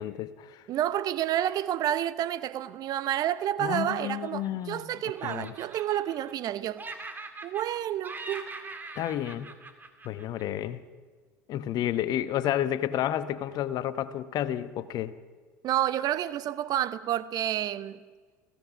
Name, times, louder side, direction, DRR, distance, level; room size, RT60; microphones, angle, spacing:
voice 1, 0.0-0.6 3.6-4.9 5.2-5.5 9.0-9.5 10.0-10.8 11.5-15.1, left 11 dB, 50° left, 1.0 m, -31 dB
voice 2, 0.7-6.9 7.4-8.5 15.6-18.0, right 12 dB, 45° right, 0.8 m, -29 dB
Laughter, 3.6-4.8 5.1-6.5 6.8-10.6, right 3 dB, 20° right, 2.4 m, -43 dB
29.5 x 15.5 x 6.1 m
figure-of-eight pair, 70°, 9 cm